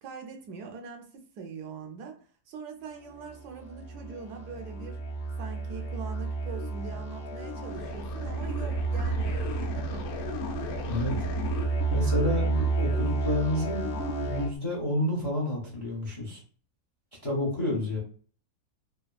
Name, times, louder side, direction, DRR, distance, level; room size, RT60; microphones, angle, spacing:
voice 1, 0.0-2.2 2.5-5.0 5.4-10.1, right 5 dB, 75° right, 3 dB, 1.1 m, -42 dB
sound 1, 3.1-14.5, right 3 dB, 70° left, 1.0 m, -31 dB
voice 2, 11.9-13.9 14.2-16.4 17.2-18.0, left 1 dB, 40° left, -3 dB, 0.4 m, -29 dB
3.3 x 2.0 x 2.2 m, 0.43 s
omnidirectional pair, 1.8 m